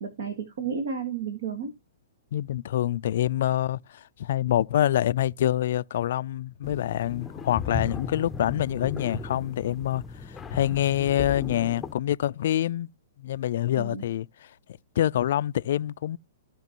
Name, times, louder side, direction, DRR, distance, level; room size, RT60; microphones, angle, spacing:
voice 1, 0.0-1.7 13.8-14.0, right 6 dB, 65° right, 1.8 m, -32 dB
voice 2, 2.3-12.9 13.2-14.3 15.0-16.2, left 12 dB, 60° left, 0.4 m, -26 dB
sound 1, 6.6-11.9, left 5 dB, 15° left, 0.7 m, -36 dB
15.5 x 5.2 x 2.9 m
hypercardioid pair, 115°, 0 cm